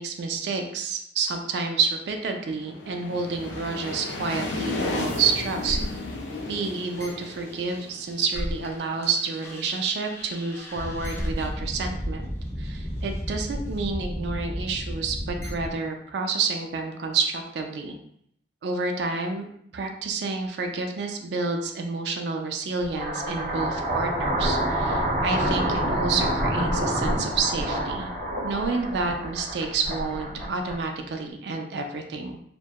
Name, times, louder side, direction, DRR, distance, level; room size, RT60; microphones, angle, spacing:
voice 1, 0.0-5.8 6.5-12.3 12.6-18.0 18.6-19.4 19.7-28.1 28.4-32.4, right 4 dB, 70° right, 4 dB, 0.3 m, -29 dB
sound 1, 2.4-9.1, left 2 dB, 85° left, 0.4 m, -34 dB
sound 2, 3.5-8.7 9.0-15.7, equal, 15° left, 0.4 m, -35 dB
sound 3, 22.8-31.1, right 1 dB, 45° right, 0.7 m, -27 dB
2.1 x 2.1 x 2.7 m, 0.70 s
head